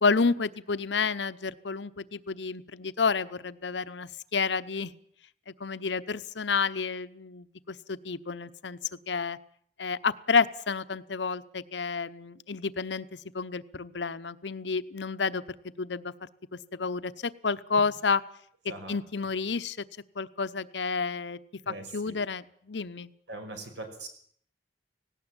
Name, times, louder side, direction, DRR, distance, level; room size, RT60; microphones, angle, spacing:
voice 1, 0.0-4.9 5.5-8.8 9.1-9.4 9.8-13.1 13.3-15.4 15.8-16.1 16.5-18.2 18.9-19.8 20.2-21.4 21.7-23.1, left 4 dB, 80° left, 14 dB, 0.9 m, -30 dB
voice 2, 18.7-19.0 21.7-22.2 23.3-24.1, right 2 dB, 80° right, 5 dB, 5.4 m, -41 dB
18.0 x 18.0 x 9.0 m, 0.63 s
head